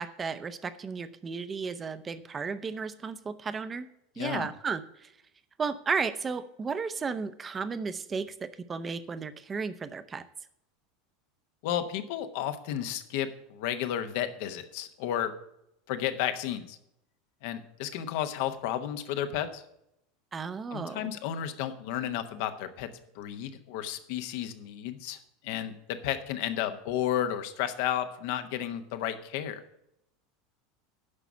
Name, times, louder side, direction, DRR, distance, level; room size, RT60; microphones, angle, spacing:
voice 1, 0.0-3.9 4.2-5.1 5.6-10.2 20.3-21.1, right 5 dB, 25° right, 13 dB, 0.7 m, -34 dB
voice 2, 4.2-4.5 11.6-15.3 15.9-16.8 17.4-19.6 20.7-22.9 23.1-25.2 25.4-29.6, left 10 dB, 60° left, 9 dB, 1.0 m, -32 dB
9.9 x 6.0 x 7.0 m, 0.79 s
figure-of-eight pair, 80°, 0 cm